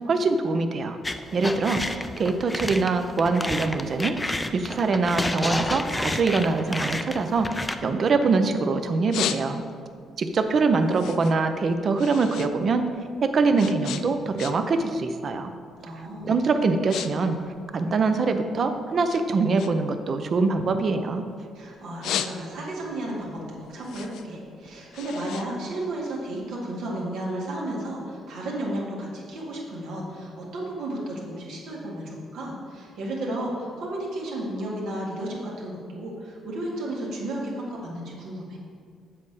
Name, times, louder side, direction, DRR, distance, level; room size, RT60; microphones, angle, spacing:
voice 1, 0.1-1.0 1.3-1.8 2.2-7.5 7.8-9.6 10.2-12.9 13.2-15.5 16.2-17.4 17.7-21.2, right 4 dB, 50° right, 8 dB, 0.6 m, -23 dB
sound 1, 1.0-7.8, left 2 dB, 15° left, 0.4 m, -30 dB
voice 2, 1.3-1.7 15.8-16.4 21.5-23.4 23.7-38.6, right 1 dB, 80° right, -4 dB, 2.0 m, -33 dB
sound 2, 7.9-8.5 8.9-9.9 10.3-12.5 12.8-14.8 15.1-15.5 16.1-16.3 16.6-17.1 17.4-18.6 19.1-21.4 21.8-22.8 23.2-26.4, left 10 dB, 80° left, 0.3 m, -35 dB
7.6 x 4.2 x 6.5 m, 2.1 s
cardioid pair, 100°, 0 cm